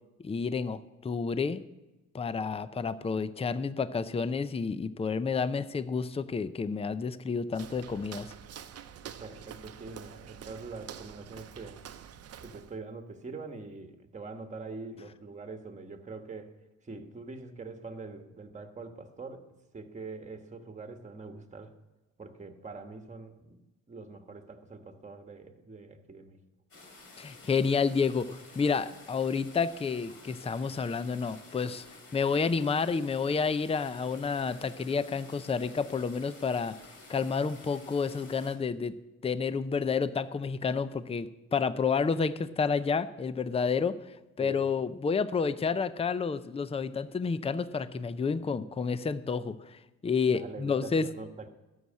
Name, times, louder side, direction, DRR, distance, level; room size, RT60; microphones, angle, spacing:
voice 1, 0.2-1.6 2.1-8.3 27.2-31.8 32.1-36.7 37.1-38.9 39.2-44.0 44.4-51.1, left 5 dB, 20° left, 14 dB, 0.5 m, -30 dB
Walk footsteps, 7.5-12.8, right 9 dB, 55° right, 0.8 m, -47 dB
voice 2, 9.2-11.8 12.4-16.5 16.8-19.5 19.7-21.7 22.2-23.5 23.9-26.4 44.4-44.7 50.3-51.5, right 3 dB, 25° right, 6 dB, 1.4 m, -44 dB
sound 1, 26.7-38.5, left 3 dB, 45° left, 3.0 m, -52 dB
12.5 x 6.4 x 7.3 m, 1.0 s
cardioid pair, 90°, 30 cm